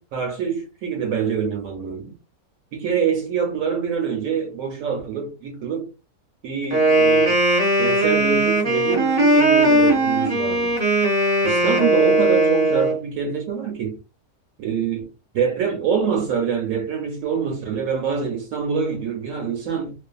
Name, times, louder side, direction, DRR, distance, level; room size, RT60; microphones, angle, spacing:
voice 1, 0.0-2.1 2.7-5.9 6.4-7.4 7.8-10.8 11.4-14.0 14.6-15.1 15.3-19.9, right 7 dB, 70° right, 0.9 m, -25 dB
Wind instrument woodwind instrument, 6.7-13.0, right 1 dB, 35° right, 0.7 m, -18 dB
2.5 x 2.2 x 2.3 m
omnidirectional pair, 1.5 m